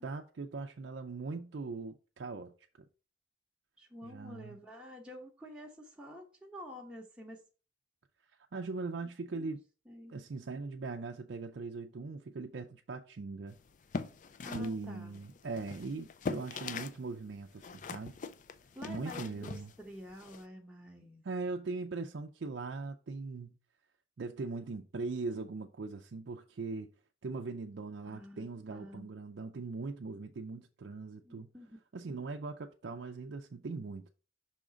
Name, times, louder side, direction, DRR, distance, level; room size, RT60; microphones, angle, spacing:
voice 1, 0.0-2.9 4.0-4.6 8.5-9.6 10.1-13.6 14.5-18.2 18.9-19.7 21.2-23.6 24.2-26.9 27.2-31.5 31.9-34.1, right 3 dB, 60° right, 0.4 m, -40 dB
voice 2, 3.8-7.4 9.3-9.5 9.9-10.1 14.4-15.2 18.7-21.2 28.0-29.1 31.2-31.8 32.1-32.2, equal, 5° right, 0.9 m, -49 dB
sound 1, 13.7-17.0 17.3-20.4, left 4 dB, 40° left, 0.3 m, -42 dB
5.7 x 3.7 x 5.0 m
head